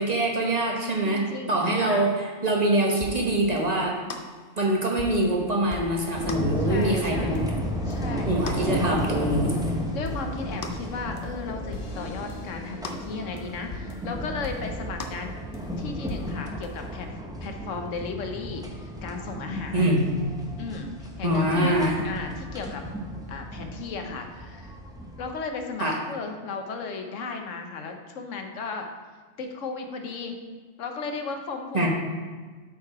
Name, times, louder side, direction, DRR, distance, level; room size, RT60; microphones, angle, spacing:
voice 1, 0.0-4.0 4.6-7.5 8.3-9.5 19.7-20.0 21.2-22.0 25.8-26.0 31.7-31.9, right 1 dB, 35° right, -1 dB, 1.0 m, -24 dB
voice 2, 1.0-2.1 6.6-7.5 7.8-8.5 9.9-15.3 15.8-19.9 20.6-21.8 22.0-22.8 23.3-24.7 25.2-28.9 29.4-30.4 30.8-31.9, left 4 dB, 80° left, 4 dB, 1.2 m, -35 dB
sound 1, 3.0-3.3 3.6-3.7 4.1-4.3 4.6-5.3 5.7-6.0 6.3-6.5 6.8-6.9 7.3-7.6 7.9-8.0 8.5-8.6 9.0-9.7 10.0-10.3 10.6-10.9 11.2-11.4 11.7-14.1 14.4-14.7 15.0-15.3 15.5-15.7 16.1-16.4 16.6-16.8, left 4 dB, 55° left, 0.7 m, -39 dB
sound 2, 6.2-25.3, equal, 5° right, 0.6 m, -33 dB
8.1 x 4.7 x 4.8 m, 1.4 s
omnidirectional pair, 1.3 m